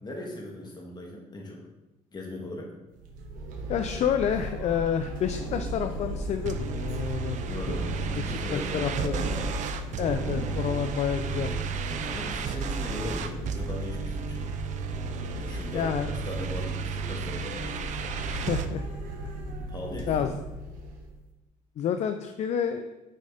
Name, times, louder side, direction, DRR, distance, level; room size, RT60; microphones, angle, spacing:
voice 1, 0.0-1.7 2.1-2.7 7.5-7.9 8.3-9.3 11.3-14.6 15.3-18.1 19.7-20.4, left 1 dB, 30° left, -1 dB, 2.0 m, -39 dB
sound 1, 2.9-21.2, right 1 dB, 75° right, 1.2 m, -36 dB
voice 2, 3.7-7.4 7.7-7.8 8.2-9.3 10.0-11.5 15.7-16.1 18.3-18.8 20.1-20.3 21.8-23.0, left 8 dB, 50° left, 8 dB, 0.5 m, -29 dB
sound 2, 5.2-19.5, left 1 dB, 85° left, 1.9 m, -45 dB
sound 3, 6.5-18.7, right 7 dB, 55° right, 0.7 m, -34 dB
6.6 x 4.8 x 4.3 m, 1.0 s
supercardioid pair, 80°, 15 cm